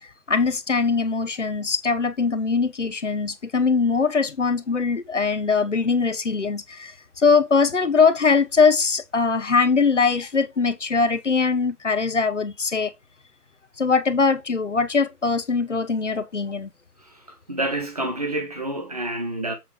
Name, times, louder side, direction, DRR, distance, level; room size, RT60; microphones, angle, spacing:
voice 1, 0.3-12.9 13.8-16.7, left 5 dB, 50° left, 0.9 m, -21 dB
voice 2, 17.5-19.5, right 1 dB, 25° right, 1.3 m, -28 dB
7.6 x 3.8 x 4.8 m
hypercardioid pair, 180°, 46 cm